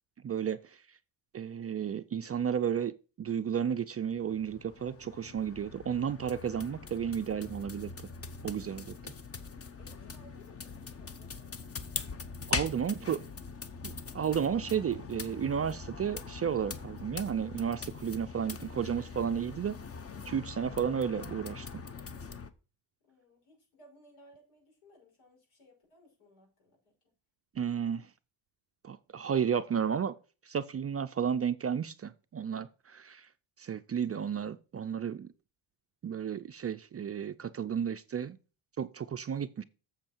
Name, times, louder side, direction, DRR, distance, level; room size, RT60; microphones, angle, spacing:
voice 1, 0.2-0.6 1.3-7.9 8.4-9.1 12.5-13.2 13.8-19.8 20.3-21.7 27.6-28.1 28.8-30.1 30.5-33.3 33.6-35.3 36.0-38.4 38.8-39.6, right 8 dB, 30° right, 0.4 m, -33 dB
sound 1, 4.0-22.5, left 5 dB, 30° left, 0.8 m, -42 dB
voice 2, 9.8-11.7 23.0-27.1, left 1 dB, 85° left, 5.9 m, -61 dB
7.6 x 7.3 x 4.5 m
cardioid pair, 120°, 50 cm